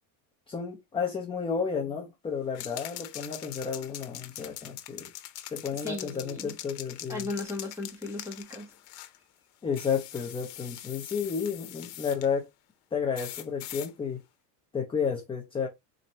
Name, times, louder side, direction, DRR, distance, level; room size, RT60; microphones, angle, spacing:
voice 1, 0.5-5.1 5.5-7.3 9.6-12.5 12.9-14.2 14.7-15.7, left 6 dB, 10° left, 0.5 m, -32 dB
sound 1, 2.5-9.2 9.7-12.3 13.1-13.9, left 13 dB, 75° left, 0.9 m, -43 dB
voice 2, 5.8-6.5 7.1-8.7, left 2 dB, 5° right, 1.1 m, -36 dB
4.2 x 2.6 x 2.9 m
cardioid pair, 145°, 48 cm